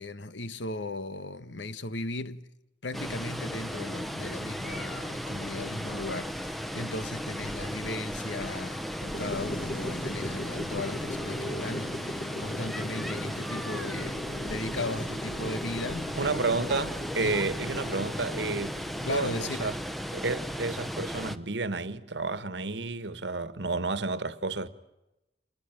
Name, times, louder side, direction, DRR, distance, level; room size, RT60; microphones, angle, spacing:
voice 1, 0.0-2.5 2.8-16.6 17.2-17.4 19.0-19.7, left 2 dB, 85° left, 1.3 m, -37 dB
Water, 2.9-21.4, equal, ahead, 0.9 m, -36 dB
sound 1, 9.1-19.1, left 1 dB, 55° left, 1.8 m, -39 dB
voice 2, 16.2-18.8 19.1-19.7 20.1-24.7, right 3 dB, 75° right, 1.5 m, -31 dB
27.5 x 20.0 x 9.1 m
head